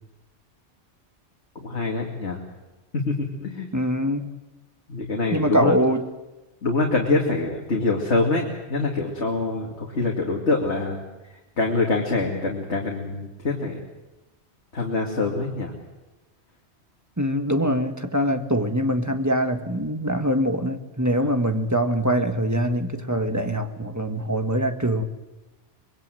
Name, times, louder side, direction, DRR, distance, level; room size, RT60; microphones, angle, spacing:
voice 1, 1.6-2.4 2.9-3.7 4.9-5.7 6.6-11.0 11.6-13.8 14.7-15.7, left 3 dB, 80° left, 0 dB, 2.7 m, -25 dB
voice 2, 3.7-4.3 5.3-6.1 17.2-25.0, equal, 15° right, 6 dB, 1.5 m, -23 dB
25.0 x 22.0 x 7.8 m, 1.1 s
omnidirectional pair, 1.2 m